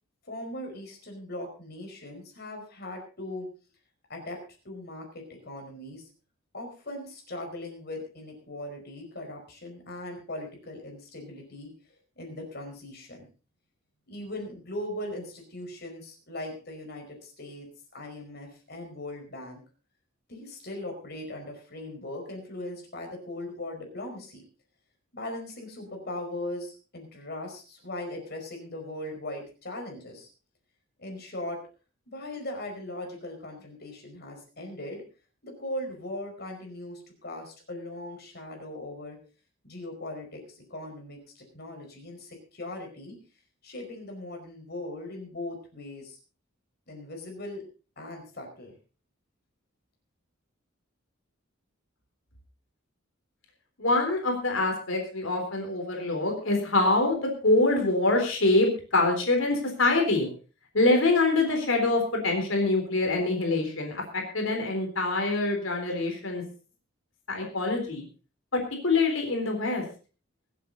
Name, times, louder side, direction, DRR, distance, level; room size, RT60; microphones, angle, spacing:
voice 1, 0.2-3.5 4.1-4.4 4.6-6.1 6.5-11.7 12.2-13.3 14.1-19.6 20.3-24.4 25.1-30.3 31.0-31.6 32.1-35.0 35.4-39.2 39.6-43.2 43.6-46.2 46.9-47.6 48.0-48.7, left 1 dB, 50° left, 2 dB, 4.9 m, -39 dB
voice 2, 53.8-60.3 60.7-64.0 64.3-66.4 67.3-68.0 68.5-69.8, left 2 dB, 70° left, 3 dB, 3.8 m, -25 dB
23.5 x 8.5 x 4.0 m, 0.36 s
head